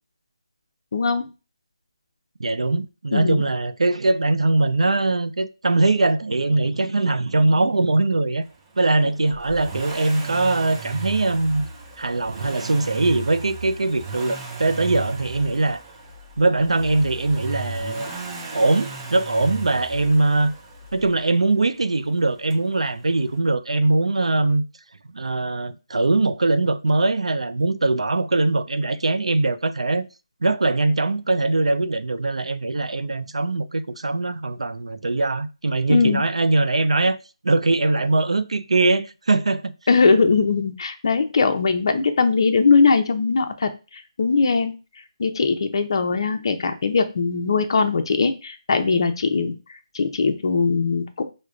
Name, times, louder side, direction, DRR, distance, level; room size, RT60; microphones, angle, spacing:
voice 1, 0.9-1.3 3.1-3.4 35.9-36.2 39.9-44.7 45.2-49.5 49.9-51.2, left 4 dB, 50° left, 0.5 m, -20 dB
voice 2, 2.4-8.4 8.8-11.7 12.0-15.8 16.4-18.1 18.5-20.5 20.9-24.6 25.1-30.1 30.4-37.2 37.4-39.7, right 2 dB, 85° right, 0.4 m, -21 dB
Accelerating revving vroom, 9.3-21.2 22.5-22.6, right 4 dB, 15° right, 0.4 m, -36 dB
4.9 x 2.2 x 2.4 m
figure-of-eight pair, 165°, 3 cm